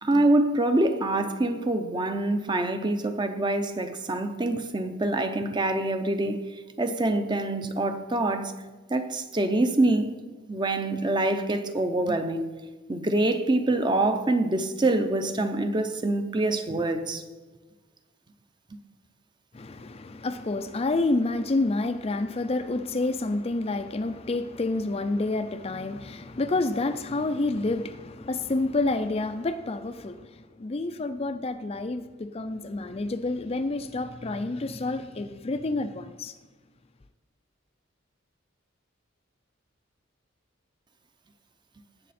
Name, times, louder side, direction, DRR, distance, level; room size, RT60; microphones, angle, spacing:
voice 1, 0.0-8.5 8.9-10.1 10.5-12.5 12.9-17.2, right 2 dB, 20° right, 0.7 m, -25 dB
voice 2, 19.5-36.3, left 2 dB, 30° left, 0.4 m, -29 dB
17.5 x 7.2 x 4.2 m
head